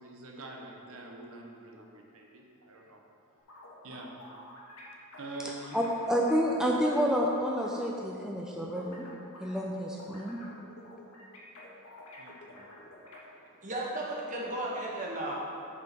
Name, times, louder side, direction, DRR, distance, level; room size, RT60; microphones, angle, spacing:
voice 1, 0.0-3.0 3.8-4.1 5.2-5.8 12.2-12.7, right 2 dB, 65° right, 0 dB, 1.0 m, -45 dB
sound 1, 3.4-7.7 8.1-13.2, left 1 dB, 85° left, 1.6 m, -50 dB
voice 2, 5.7-9.0 9.4-10.4, equal, 5° right, -2 dB, 0.5 m, -29 dB
voice 3, 13.6-15.3, right 1 dB, 35° right, -4 dB, 1.6 m, -34 dB
8.4 x 4.8 x 6.1 m, 2.6 s
head